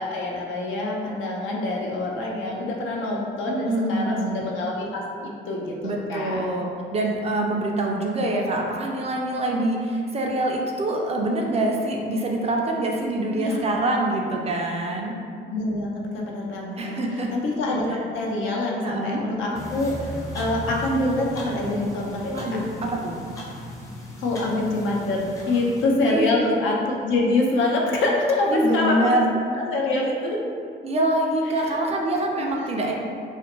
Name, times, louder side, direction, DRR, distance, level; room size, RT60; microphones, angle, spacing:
voice 1, 0.0-6.5 13.3-13.6 15.5-17.0 17.3-22.3 24.2-29.2 29.6-30.4 31.5-31.8 32.3-32.7, left 2 dB, 75° left, -1 dB, 0.5 m, -25 dB
voice 2, 3.7-4.4 5.8-15.1 16.8-17.3 18.8-19.2 22.3-23.1 26.1-26.4 28.5-29.3 30.8-33.0, right 1 dB, 30° right, -1 dB, 0.4 m, -25 dB
sound 1, 19.5-25.8, left 1 dB, 15° left, 0.5 m, -36 dB
2.5 x 2.1 x 2.9 m, 2.3 s
cardioid pair, 90°, 20 cm